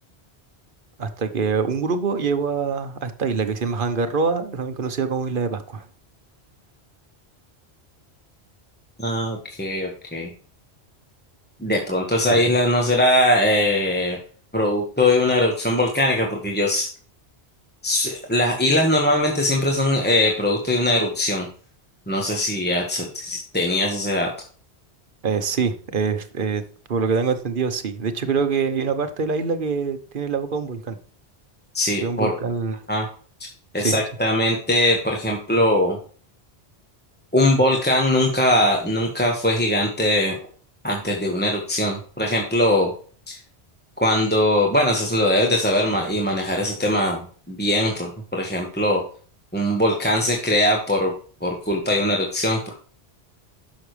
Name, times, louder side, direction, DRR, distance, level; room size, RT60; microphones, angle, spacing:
voice 1, 1.0-5.8 12.3-12.4 25.2-26.6 26.9-31.0 32.0-32.8 33.7-34.0, right 5 dB, 55° right, 10 dB, 1.1 m, -24 dB
voice 2, 9.0-10.3 11.6-14.2 14.5-16.9 17.8-21.5 22.1-24.3 31.7-32.4 32.9-33.1 33.7-36.0 37.3-40.3 40.8-42.9 43.3-43.4 44.0-49.0 49.5-51.1 51.4-52.8, left 1 dB, 10° left, 0 dB, 1.4 m, -21 dB
11.0 x 6.4 x 3.3 m, 0.43 s
omnidirectional pair, 1.1 m